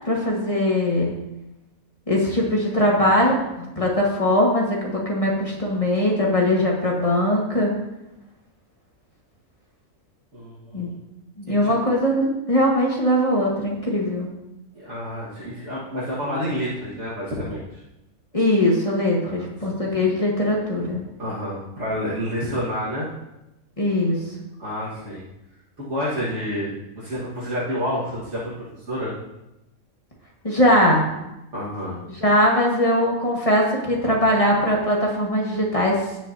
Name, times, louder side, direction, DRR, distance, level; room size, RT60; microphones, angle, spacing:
voice 1, 0.0-1.1 2.1-7.7 10.7-10.9 11.4-14.3 18.3-21.1 23.8-24.2 30.4-31.0 32.1-36.1, left 1 dB, 25° left, -2 dB, 1.6 m, -21 dB
voice 2, 10.3-10.9 11.5-11.7 14.7-17.8 19.2-19.5 21.2-23.1 24.6-25.3 25.8-29.1 31.5-32.0, equal, 55° right, -9 dB, 2.1 m, -29 dB
16.5 x 5.9 x 2.8 m, 0.92 s
omnidirectional pair, 1.5 m